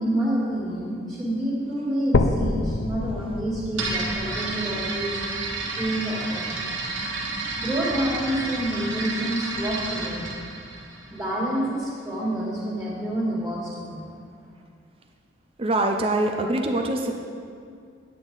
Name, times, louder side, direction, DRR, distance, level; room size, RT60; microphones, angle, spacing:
voice 1, 0.0-5.2 5.7-6.5 7.6-10.3 11.1-14.1, right 1 dB, 10° right, -10 dB, 2.0 m, -28 dB
sound 1, 2.1-6.1 6.7-6.8 7.4-7.5 7.8-7.9 8.7-8.8, left 3 dB, 70° left, 0.5 m, -28 dB
sound 2, 3.7-11.6, right 3 dB, 85° right, 1.5 m, -31 dB
voice 2, 15.6-17.1, right 2 dB, 30° right, 3 dB, 0.5 m, -24 dB
9.1 x 8.9 x 3.9 m, 2.3 s
head